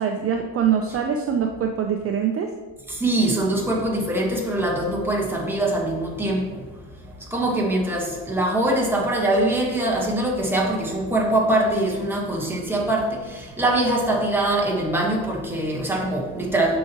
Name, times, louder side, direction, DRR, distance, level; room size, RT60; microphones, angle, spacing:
voice 1, 0.0-2.5, right 7 dB, 40° right, 4 dB, 0.5 m, -23 dB
voice 2, 2.9-6.7 7.0-16.8, right 1 dB, 5° right, -2 dB, 1.3 m, -23 dB
8.4 x 5.7 x 3.0 m, 1.4 s
cardioid pair, 135°, 35 cm